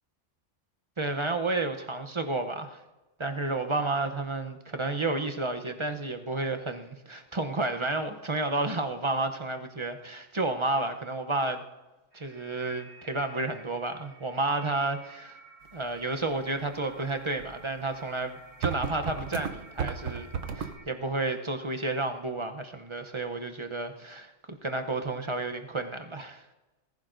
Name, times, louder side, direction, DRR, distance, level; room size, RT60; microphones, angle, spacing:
voice 1, 1.0-2.8 3.2-11.6 12.1-15.4 15.7-20.3 20.6-26.4, right 2 dB, 30° right, 6 dB, 0.7 m, -31 dB
sound 1, 12.1-20.9, right 2 dB, 35° left, 2.1 m, -53 dB
sound 2, 17.4-17.5 18.1-18.2 18.6-20.8, right 6 dB, 80° right, 1.2 m, -33 dB
19.5 x 14.5 x 2.6 m, 1.1 s
omnidirectional pair, 1.3 m